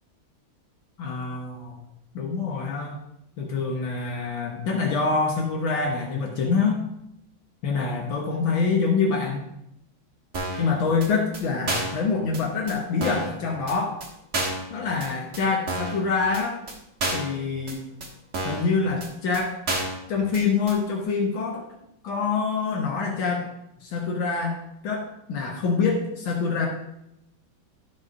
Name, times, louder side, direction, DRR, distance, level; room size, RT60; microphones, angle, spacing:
voice 1, 1.0-1.8 2.1-3.0 3.4-6.8 7.6-9.5 10.6-14.0 14.7-16.6 17.1-17.9 18.4-19.5 20.1-21.6 22.0-23.5 23.8-26.7, left 4 dB, 70° left, 0 dB, 1.8 m, -25 dB
sound 1, 10.3-10.7 11.0-11.1 11.3-11.4 11.7-12.0 12.3-12.4 12.7-12.8 13.0-13.3 13.7-13.8 14.0-14.1 14.3-14.7 15.0-15.1 15.3-15.4 15.7-16.0 16.3-16.4 16.7-16.8 17.0-17.3 17.7-17.8 18.0-18.1 18.3-18.7 19.0-19.1 19.3-19.4 19.7-20.0 20.3-20.4 20.7-20.8, right 2 dB, 40° right, 1.7 m, -29 dB
12.5 x 4.4 x 4.9 m, 0.82 s
omnidirectional pair, 2.3 m